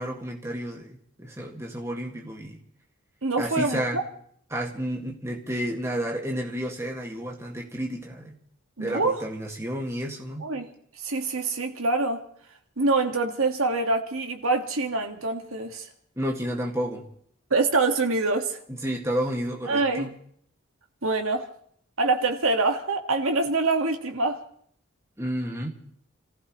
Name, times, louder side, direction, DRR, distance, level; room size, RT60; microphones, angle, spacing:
voice 1, 0.0-2.6 3.4-4.0 4.5-8.4 8.8-10.5 16.2-17.1 18.7-20.1 25.2-25.7, equal, 15° right, 2.0 m, -31 dB
voice 2, 3.2-4.0 8.8-9.2 10.4-10.7 11.0-12.2 12.8-15.9 17.5-18.6 19.7-20.1 21.0-21.5 22.0-24.4, right 3 dB, 80° right, 1.9 m, -25 dB
29.5 x 15.5 x 3.2 m
head